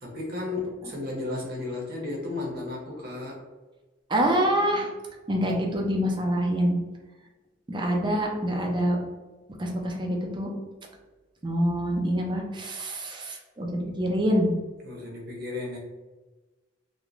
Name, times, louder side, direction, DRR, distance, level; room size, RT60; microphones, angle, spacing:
voice 1, 0.0-3.4 14.8-15.8, left 2 dB, 55° right, -2 dB, 0.8 m, -34 dB
voice 2, 4.1-4.9 5.3-6.7 7.7-9.0 9.6-10.5 11.4-14.5, equal, 25° right, 1 dB, 0.4 m, -26 dB
2.9 x 2.2 x 2.5 m, 1.2 s
head